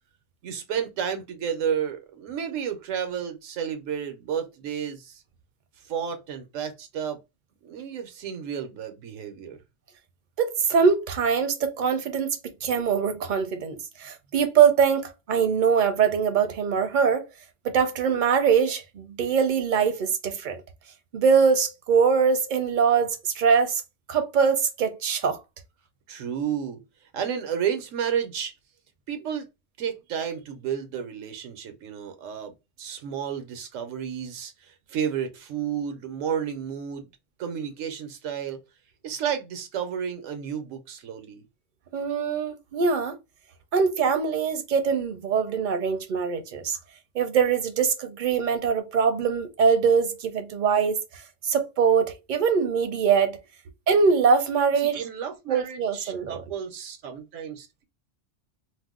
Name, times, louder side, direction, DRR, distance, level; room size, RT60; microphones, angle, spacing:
voice 1, 0.4-5.2 5.8-7.2 7.6-9.6 26.1-26.8 27.1-28.5 29.1-29.5 29.8-32.5 32.8-37.1 37.4-38.6 39.0-41.4 54.8-57.8, right 8 dB, 85° right, 1.0 m, -31 dB
voice 2, 10.4-17.3 17.6-20.6 21.1-23.8 24.1-25.4 41.9-43.1 43.7-46.8 47.1-53.4 53.9-55.0 55.5-56.4, right 6 dB, 55° right, 0.6 m, -23 dB
2.5 x 2.1 x 3.5 m
omnidirectional pair, 1.3 m